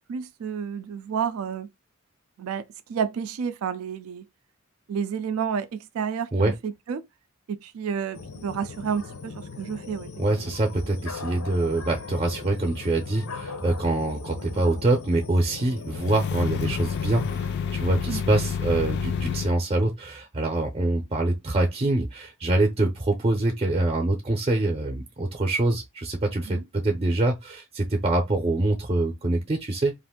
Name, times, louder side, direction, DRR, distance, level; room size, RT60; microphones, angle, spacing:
voice 1, 0.1-1.7 2.4-2.6 2.9-4.2 4.9-7.0 7.5-10.1 10.4-10.5 18.1-18.2 26.5-26.6, right 7 dB, 75° right, 0.3 m, -30 dB
sound 1, 8.1-17.6, left 4 dB, 85° left, 0.6 m, -39 dB
voice 2, 10.2-29.9, right 2 dB, 30° right, 0.6 m, -25 dB
sound 2, 15.9-19.6, left 7 dB, 50° left, 0.3 m, -29 dB
2.5 x 2.5 x 3.5 m
head